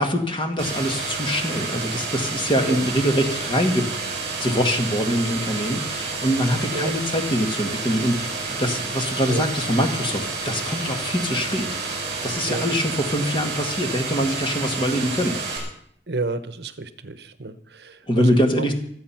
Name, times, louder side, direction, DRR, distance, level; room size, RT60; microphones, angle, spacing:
voice 1, 0.0-3.9 4.4-11.7 12.2-15.4 18.1-18.7, equal, 30° left, 5 dB, 1.9 m, -23 dB
sound 1, 0.6-15.6, right 4 dB, 40° right, 7.6 m, -29 dB
voice 2, 16.1-18.6, right 3 dB, 70° right, 12 dB, 1.0 m, -31 dB
24.5 x 8.4 x 5.9 m, 0.66 s
head